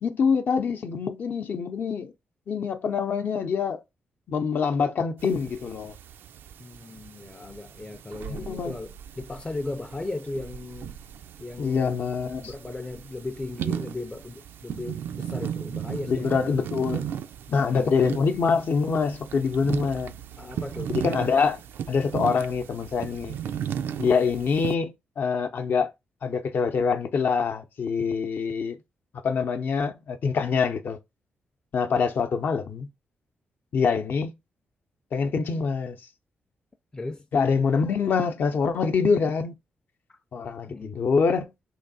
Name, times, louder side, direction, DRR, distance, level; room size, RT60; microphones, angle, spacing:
voice 1, 0.0-2.1 2.5-3.8 4.3-5.9 8.3-8.8 11.6-12.5 16.1-17.0 17.5-20.1 20.9-21.6 21.9-23.4 24.0-25.9 26.2-28.8 29.2-31.0 31.7-32.9 33.7-34.3 35.1-36.0 37.3-39.5 40.3-41.5, left 5 dB, 65° left, 0.6 m, -25 dB
sound 1, 5.2-24.8, right 9 dB, 80° right, 0.3 m, -36 dB
voice 2, 6.6-11.0 11.4-16.6 17.5-17.9 20.4-20.9 36.9-37.3 40.1-40.2 40.7-41.0, left 2 dB, 20° left, 0.4 m, -37 dB
3.2 x 2.7 x 3.9 m
cardioid pair, 75°, 4 cm